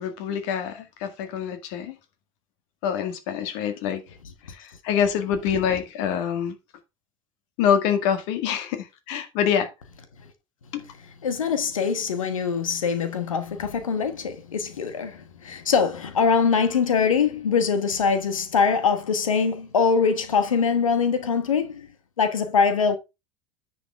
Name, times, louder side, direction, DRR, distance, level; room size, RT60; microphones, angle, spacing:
voice 1, 0.0-2.0 2.8-4.0 4.6-6.5 7.6-9.7 10.7-10.8, left 8 dB, 60° left, 1.9 m, -25 dB
voice 2, 11.2-21.9 22.2-23.0, left 5 dB, 80° left, 1.2 m, -23 dB
10.0 x 6.1 x 3.5 m
figure-of-eight pair, 75°, 17 cm